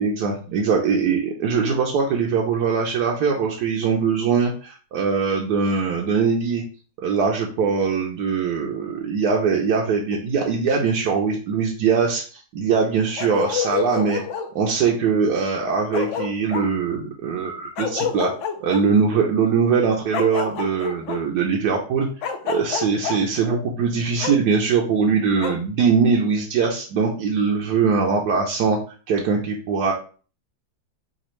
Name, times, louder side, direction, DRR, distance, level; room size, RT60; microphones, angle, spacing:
voice 1, 0.0-6.6 7.0-14.2 14.5-18.3 18.6-22.1 22.4-28.8 29.1-29.9, right 5 dB, 80° right, -1 dB, 1.2 m, -21 dB
Bark, 13.2-14.5 15.5-15.6 15.9-16.7 17.8-18.8 20.1-21.2 22.2-23.2 24.2-24.4 25.4-25.6, left 7 dB, 70° left, 0.7 m, -27 dB
5.1 x 2.4 x 3.0 m, 0.39 s
omnidirectional pair, 1.7 m